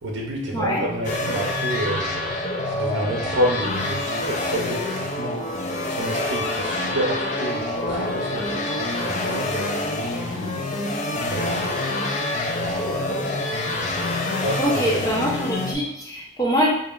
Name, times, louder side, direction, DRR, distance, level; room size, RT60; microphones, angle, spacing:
voice 1, 0.0-2.1 2.7-5.4 5.9-10.7 11.3-12.0 14.4-15.0, equal, 85° right, -1 dB, 0.6 m, -29 dB
voice 2, 0.5-0.9 14.6-16.7, equal, 20° left, -5 dB, 0.8 m, -24 dB
sound 1, 1.0-15.7, left 2 dB, 40° left, 0.4 m, -26 dB
4.7 x 2.7 x 2.4 m, 0.79 s
head